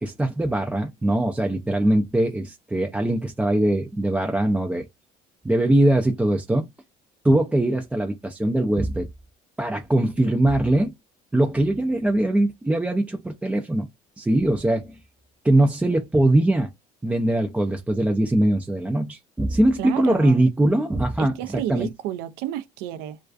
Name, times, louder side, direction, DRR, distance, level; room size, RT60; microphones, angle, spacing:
voice 1, 0.0-4.9 5.4-6.7 7.2-9.1 9.6-10.9 11.3-13.9 14.2-15.0 15.4-16.7 17.0-21.9, right 1 dB, 5° right, 0.3 m, -21 dB
voice 2, 19.8-20.4 21.2-23.2, right 12 dB, 85° right, 0.4 m, -31 dB
2.3 x 2.3 x 2.3 m
cardioid pair, 115°, 17 cm